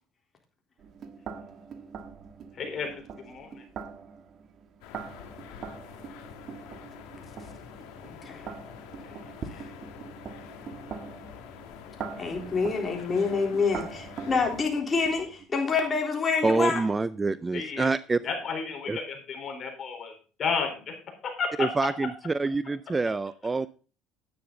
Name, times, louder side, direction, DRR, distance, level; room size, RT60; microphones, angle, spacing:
sound 1, 0.8-15.5, right 6 dB, 45° right, 1.4 m, -43 dB
voice 1, 2.5-3.7 9.0-9.6 16.6-16.9 17.5-17.9 18.2-20.9 21.4-21.7 23.0-23.1, left 5 dB, 45° left, 4 dB, 4.0 m, -33 dB
sound 2, 4.8-14.7, left 8 dB, 80° left, 1.9 m, -46 dB
voice 2, 8.1-8.4 12.2-16.8, left 4 dB, 30° left, 1 dB, 3.5 m, -27 dB
voice 3, 16.4-18.2 18.9-19.0 21.6-23.7, right 3 dB, 20° right, 15 dB, 0.4 m, -26 dB
10.5 x 8.8 x 3.9 m, 0.37 s
supercardioid pair, 105°, 0 cm